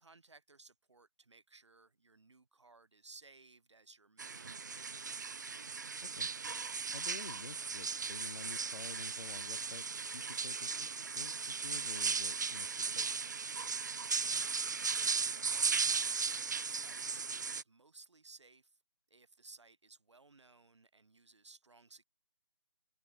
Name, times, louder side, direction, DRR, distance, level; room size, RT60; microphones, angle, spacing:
voice 1, 0.0-5.3 14.1-18.8 19.1-22.0, right 3 dB, 90° right, 5.7 m, -60 dB
sound 1, 4.2-17.6, right 5 dB, 40° right, 0.7 m, -37 dB
voice 2, 6.9-10.9 11.1-13.1, left 3 dB, 80° left, 4.8 m, -50 dB
open air
hypercardioid pair, 175°, 14 cm